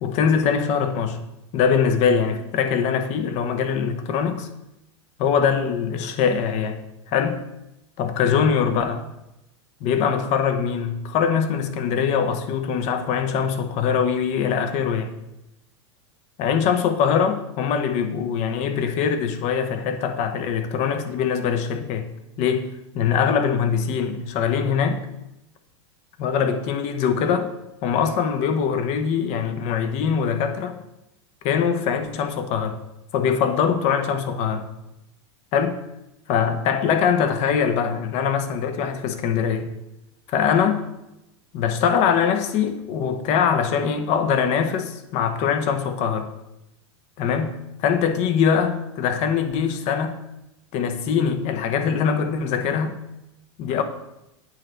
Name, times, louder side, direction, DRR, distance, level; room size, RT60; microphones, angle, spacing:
voice 1, 0.0-1.2 1.5-4.5 5.2-7.4 8.0-9.0 9.8-15.1 16.4-22.1 22.4-25.1 26.2-27.5 27.8-30.8 31.4-32.8 33.1-34.7 35.5-35.8 36.3-39.7 40.3-40.8 41.5-46.3 47.2-50.2 50.7-53.0 53.6-53.8, left 7 dB, 45° left, 0.7 m, -22 dB
8.6 x 3.2 x 4.0 m
hypercardioid pair, 105°, 16 cm